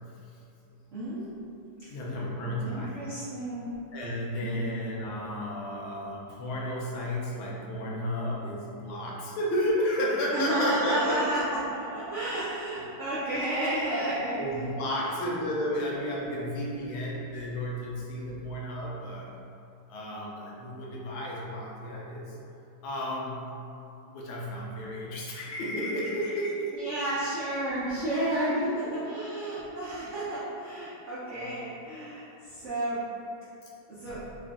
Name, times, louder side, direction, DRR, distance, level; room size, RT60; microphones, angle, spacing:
voice 1, 0.9-1.4 2.1-2.2 2.6-3.7 4.4-4.6 10.3-14.6 26.7-28.6 28.9-33.0 33.9-34.2, right 1 dB, 80° right, -12 dB, 0.6 m, -31 dB
voice 2, 1.8-3.0 3.9-11.2 13.9-14.0 14.4-19.3 19.9-22.4 22.8-23.5 24.1-26.8 28.5-29.1 33.6-33.7 34.1-34.2, left 1 dB, 75° left, -4 dB, 1.4 m, -32 dB
3.8 x 2.4 x 3.5 m, 2.7 s
omnidirectional pair, 2.4 m